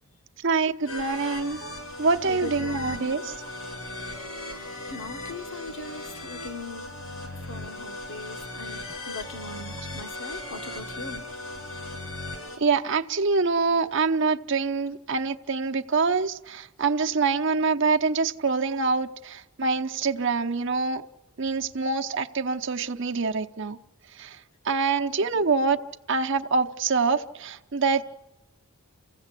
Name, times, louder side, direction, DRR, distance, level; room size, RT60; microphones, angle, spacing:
voice 1, 0.4-1.7 2.0-3.2 12.6-21.0 21.4-23.8 24.2-24.4 24.6-25.8 26.1-28.0, right 4 dB, 60° right, 5 dB, 0.9 m, -25 dB
sound 1, 0.9-12.6, left 2 dB, 80° left, 7.5 m, -37 dB
voice 2, 2.2-3.1 4.0-6.9 7.4-11.2 25.1-25.4, left 3 dB, 60° left, 6 dB, 1.5 m, -41 dB
28.0 x 16.5 x 8.3 m, 1.0 s
head